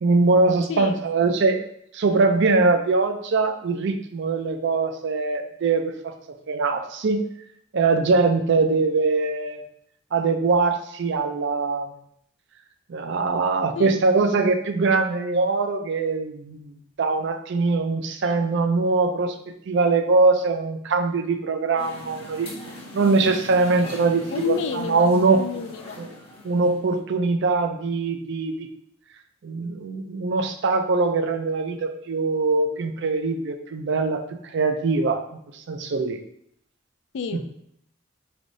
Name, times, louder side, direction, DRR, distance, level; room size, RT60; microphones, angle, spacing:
voice 1, 0.0-1.6 1.9-6.2 6.5-7.2 7.7-9.7 10.1-11.9 12.9-16.7 17.0-19.4 19.7-25.5 26.0-26.1 26.4-28.7 29.4-35.3 35.5-36.2 37.3-37.4, right 3 dB, 60° right, 7 dB, 0.4 m, -22 dB
voice 2, 13.7-14.3 24.3-26.0 37.1-37.4, left 7 dB, 60° left, 9 dB, 0.3 m, -30 dB
sound 1, 21.8-27.0, left 2 dB, 25° left, 0.9 m, -40 dB
5.1 x 3.3 x 2.6 m, 0.72 s
head